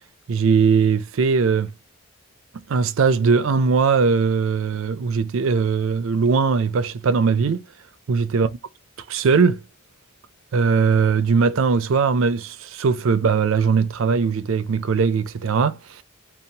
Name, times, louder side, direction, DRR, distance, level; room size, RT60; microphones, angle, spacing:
voice 1, 0.3-1.7 2.5-7.6 8.1-8.5 9.1-9.6 10.5-16.0, right 5 dB, 70° right, 0.4 m, -20 dB
2.8 x 2.0 x 2.6 m
head